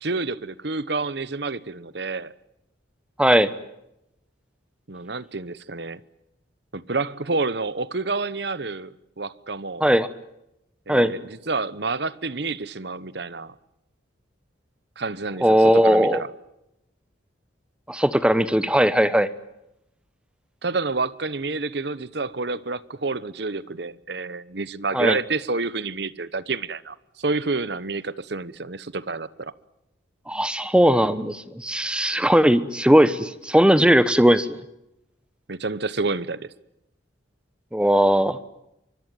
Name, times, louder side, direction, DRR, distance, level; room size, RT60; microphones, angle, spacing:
voice 1, 0.0-2.3 4.9-6.0 6.7-9.9 10.9-13.5 15.0-16.3 20.6-29.5 35.5-36.5, right 3 dB, 60° right, 1.0 m, -29 dB
voice 2, 3.2-3.5 9.8-10.1 10.9-11.1 15.4-16.2 17.9-19.3 24.9-25.2 30.3-34.6 37.7-38.4, equal, 5° right, 1.1 m, -18 dB
25.0 x 22.0 x 9.3 m
head